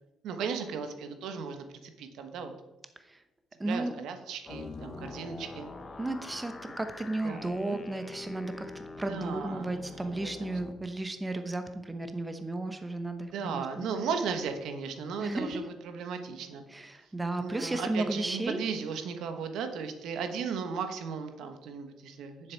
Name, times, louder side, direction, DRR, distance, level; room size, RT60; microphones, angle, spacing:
voice 1, 0.2-2.5 3.7-5.7 7.2-7.8 9.1-9.8 10.2-10.3 13.3-16.6 17.4-22.5, right 6 dB, 85° right, 7 dB, 1.1 m, -36 dB
voice 2, 3.6-3.9 6.0-13.9 15.2-15.7 16.7-18.6, right 2 dB, 15° right, 8 dB, 1.0 m, -34 dB
sound 1, 4.5-10.7, left 3 dB, 30° left, 1.0 m, -44 dB
9.6 x 7.3 x 4.6 m, 0.97 s
cardioid pair, 90°, 0 cm